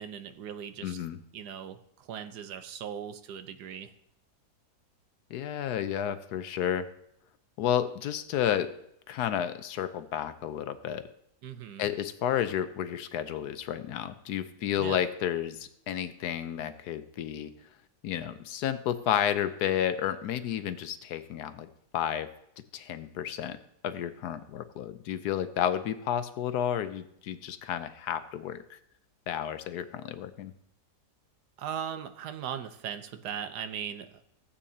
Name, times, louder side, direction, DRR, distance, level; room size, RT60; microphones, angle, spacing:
voice 1, 0.0-1.0 1.3-3.9 11.4-11.9 14.8-15.0 31.6-34.2, right 8 dB, 85° right, 9 dB, 1.4 m, -39 dB
voice 2, 0.8-1.2 5.3-6.9 7.6-8.7 9.1-11.1 11.8-17.5 18.0-21.7 21.9-22.3 22.7-23.6 23.8-28.8 29.3-30.5, left 10 dB, 80° left, 11 dB, 1.2 m, -31 dB
15.5 x 8.5 x 2.8 m, 0.75 s
omnidirectional pair, 1.7 m